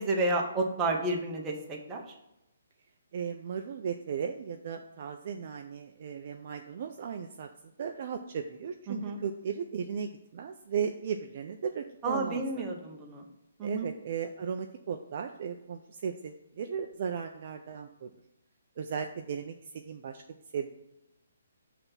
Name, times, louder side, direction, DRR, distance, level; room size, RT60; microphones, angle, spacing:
voice 1, 0.0-2.0 8.9-9.2 12.0-13.2 13.6-13.9, right 2 dB, 10° right, 0 dB, 0.7 m, -31 dB
voice 2, 3.1-7.5 7.8-12.4 13.6-18.1 18.8-20.2 20.5-20.7, right 7 dB, 35° right, 5 dB, 0.3 m, -36 dB
6.2 x 3.3 x 5.6 m, 0.92 s
hypercardioid pair, 175°, 0 cm